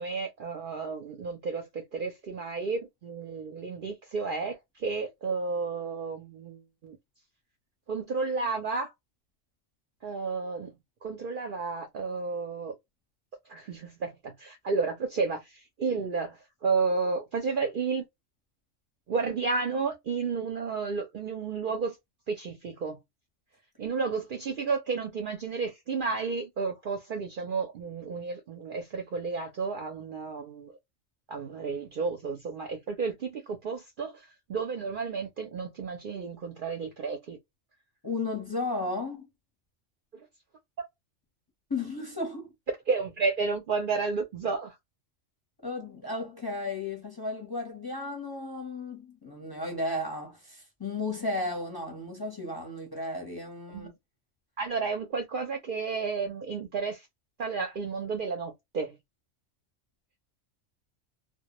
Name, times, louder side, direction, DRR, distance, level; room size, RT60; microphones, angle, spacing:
voice 1, 0.0-7.0 7.9-8.9 10.0-10.7 11.0-12.7 13.5-18.0 19.1-22.0 22.3-23.0 23.8-30.7 31.3-37.4 40.1-40.2 42.9-44.8 53.7-53.9 54.6-57.1 57.4-59.0, right 4 dB, 60° right, 0.6 m, -32 dB
voice 2, 38.0-39.3 41.7-42.5 45.6-53.9, left 2 dB, 25° left, 0.7 m, -34 dB
2.1 x 2.1 x 2.8 m
omnidirectional pair, 1.3 m